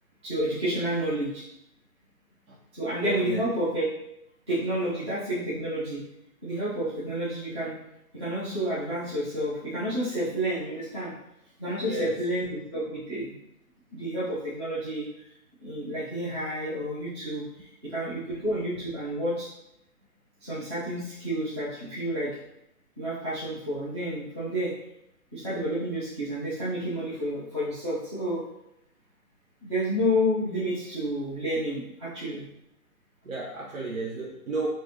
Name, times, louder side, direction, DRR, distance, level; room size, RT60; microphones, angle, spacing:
voice 1, 0.2-1.4 2.7-3.8 4.5-6.0 6.4-7.7 8.1-11.1 11.6-13.4 13.9-15.1 15.6-19.5 20.4-22.4 23.0-24.7 25.3-28.4 29.6-32.4, equal, 20° right, -11 dB, 0.7 m, -30 dB
voice 2, 3.1-3.5 11.8-12.2 33.2-34.7, right 3 dB, 60° right, -2 dB, 0.7 m, -32 dB
4.5 x 2.5 x 2.8 m, 0.83 s
figure-of-eight pair, 150°, 45 cm